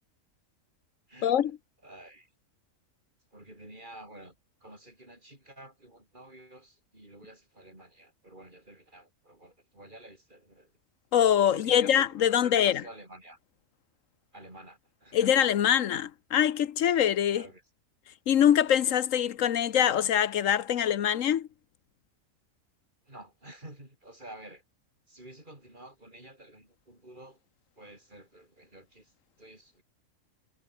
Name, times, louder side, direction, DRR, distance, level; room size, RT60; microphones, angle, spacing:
voice 1, 1.1-1.5 1.8-2.3 3.3-4.4 4.6-10.7 11.4-13.4 14.3-15.5 17.3-17.6 23.0-24.6 25.1-27.4 27.8-29.8, right 1 dB, 35° right, 7.9 m, -50 dB
voice 2, 11.1-12.8 15.1-17.4 18.3-21.5, left 10 dB, 70° left, 1.2 m, -24 dB
omnidirectional pair, 1.4 m